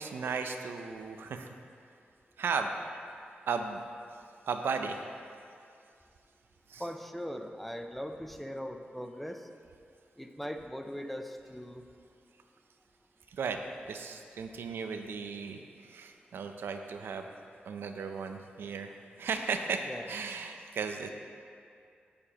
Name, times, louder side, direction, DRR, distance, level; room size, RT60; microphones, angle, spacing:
voice 1, 0.0-1.5 2.4-2.7 3.5-3.8 4.5-5.0 6.7-6.9 13.3-13.6 13.9-17.3 17.7-21.1, right 5 dB, 90° right, 6 dB, 0.5 m, -35 dB
voice 2, 6.8-9.4 10.2-11.8 19.9-20.1, equal, 5° left, 5 dB, 0.3 m, -40 dB
8.7 x 6.9 x 2.9 m, 2.4 s
wide cardioid pair, 145°, 4 cm